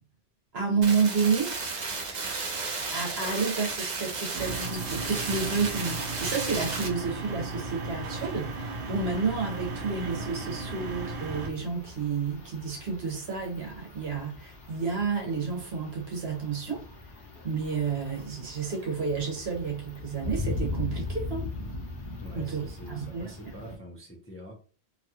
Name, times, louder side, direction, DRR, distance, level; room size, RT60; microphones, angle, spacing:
voice 1, 0.5-1.5 2.9-16.9 17.4-21.5 22.3-23.3, right 5 dB, 70° right, 1.2 m, -30 dB
sound 1, 0.8-6.9, right 4 dB, 50° right, 0.7 m, -33 dB
sound 2, 4.3-11.5, right 3 dB, 85° right, 0.9 m, -36 dB
sound 3, 6.5-23.8, left 2 dB, 55° left, 0.9 m, -40 dB
voice 2, 22.2-24.5, equal, 20° left, 0.4 m, -45 dB
2.8 x 2.3 x 2.8 m
omnidirectional pair, 1.1 m